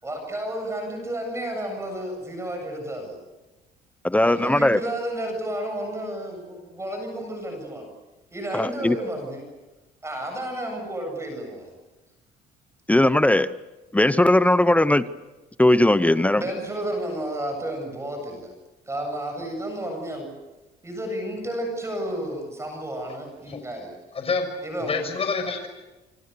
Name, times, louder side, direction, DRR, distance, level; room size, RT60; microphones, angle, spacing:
voice 1, 0.0-3.2 4.1-7.9 8.3-9.5 10.0-11.8 16.4-18.5 18.9-20.3 20.8-23.9 24.6-25.0, right 1 dB, 15° right, 4 dB, 7.8 m, -31 dB
voice 2, 4.0-4.8 8.5-9.0 12.9-13.5 13.9-15.1 15.6-16.4, left 1 dB, 10° left, 14 dB, 0.9 m, -18 dB
voice 3, 24.1-24.5 24.8-25.7, left 4 dB, 35° left, 6 dB, 6.5 m, -27 dB
28.5 x 26.0 x 6.9 m, 1.1 s
cardioid pair, 110°, 17 cm